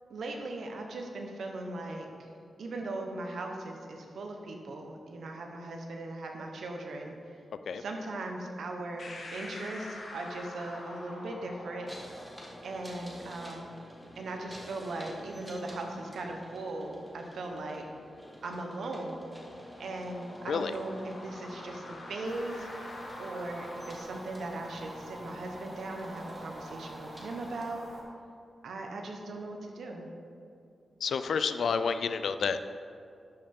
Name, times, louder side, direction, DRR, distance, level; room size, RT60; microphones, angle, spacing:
voice 1, 0.1-2.3 2.6-7.2 7.7-11.9 12.6-13.8 14.2-17.8 18.4-19.2 19.8-22.7 23.2-27.9 28.6-30.1, right 2 dB, 85° right, 2 dB, 1.0 m, -39 dB
sound 1, 9.0-24.0, left 2 dB, 55° left, 1.1 m, -48 dB
sound 2, 11.9-27.6, equal, ahead, 1.2 m, -50 dB
sound 3, 22.3-28.0, right 1 dB, 45° right, 1.4 m, -47 dB
voice 2, 31.0-32.6, left 5 dB, 80° left, 10 dB, 0.3 m, -29 dB
11.5 x 5.5 x 3.6 m, 2.4 s
wide cardioid pair, 140°, 0 cm